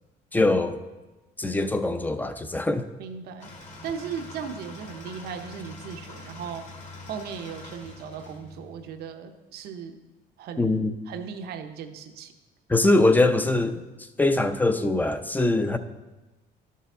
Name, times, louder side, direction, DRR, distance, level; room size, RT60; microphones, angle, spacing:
voice 1, 0.3-0.8 1.4-2.9 10.6-10.9 12.7-13.8 14.2-15.8, left 2 dB, 10° left, 0.5 m, -22 dB
voice 2, 3.0-3.5 3.8-6.7 7.0-10.0 10.4-10.7 11.1-12.3, right 7 dB, 70° right, 0.7 m, -37 dB
sound 1, 3.4-9.1, left 2 dB, 45° left, 1.9 m, -44 dB
13.0 x 5.6 x 3.7 m
cardioid pair, 110°, 17 cm